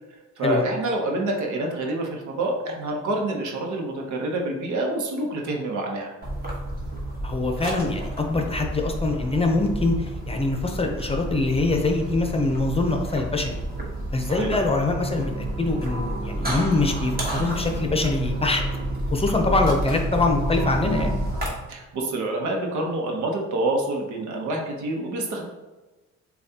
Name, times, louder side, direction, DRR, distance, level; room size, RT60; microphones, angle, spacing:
voice 1, 0.4-6.1 14.3-14.5 21.7-25.5, right 2 dB, 75° right, 1 dB, 0.9 m, -27 dB
sound 1, 6.2-21.5, right 1 dB, 30° right, 1.4 m, -30 dB
voice 2, 7.2-13.6 14.1-18.6 19.1-21.2, left 3 dB, 20° left, 3 dB, 0.6 m, -24 dB
6.9 x 2.4 x 2.8 m, 1.2 s
cardioid pair, 90°, 30 cm